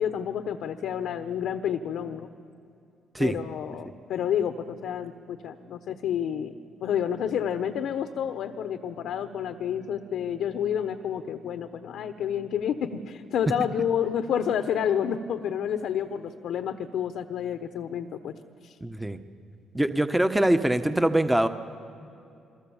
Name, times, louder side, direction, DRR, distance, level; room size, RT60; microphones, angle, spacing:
voice 1, 0.0-2.3 3.2-6.5 6.8-18.3 18.6-18.7, left 8 dB, 75° left, 9 dB, 1.1 m, -29 dB
voice 2, 18.8-19.2 19.7-21.5, right 1 dB, 10° right, 9 dB, 1.3 m, -23 dB
28.0 x 23.5 x 7.3 m, 2.6 s
supercardioid pair, 70°, 0 cm